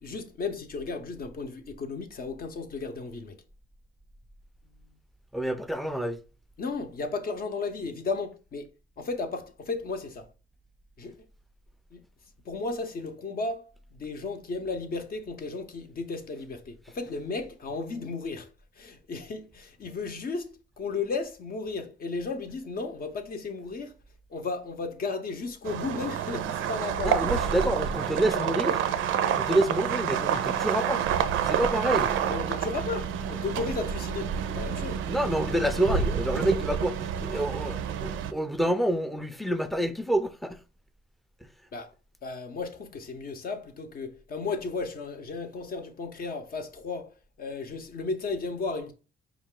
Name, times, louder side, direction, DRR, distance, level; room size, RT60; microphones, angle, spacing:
voice 1, 0.0-3.4 6.6-8.7 9.0-10.3 11.0-11.2 11.9-12.0 12.4-18.5 18.8-23.9 24.3-27.3 28.4-28.5 32.3-35.0 41.7-41.9 42.2-48.9, left 4 dB, 50° left, 0.7 m, -34 dB
voice 2, 5.3-6.2 27.0-28.8 29.3-31.0 31.5-32.1 35.1-40.6 41.4-41.5, right 1 dB, ahead, 0.4 m, -28 dB
sound 1, 25.7-38.3, right 8 dB, 85° right, 0.4 m, -28 dB
4.8 x 2.4 x 3.7 m
cardioid pair, 90°, 20 cm